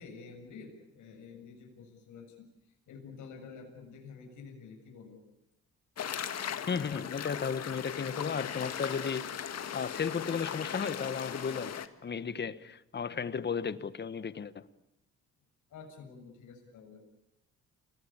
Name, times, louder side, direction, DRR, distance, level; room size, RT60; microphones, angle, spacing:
voice 1, 0.0-5.2 15.7-17.2, left 5 dB, 75° left, 7.1 m, -49 dB
sound 1, 6.0-11.9, left 8 dB, 55° left, 1.9 m, -38 dB
voice 2, 6.7-9.3 9.7-14.6, left 6 dB, 35° left, 1.3 m, -34 dB
29.0 x 19.5 x 8.7 m
cardioid pair, 90°, 30 cm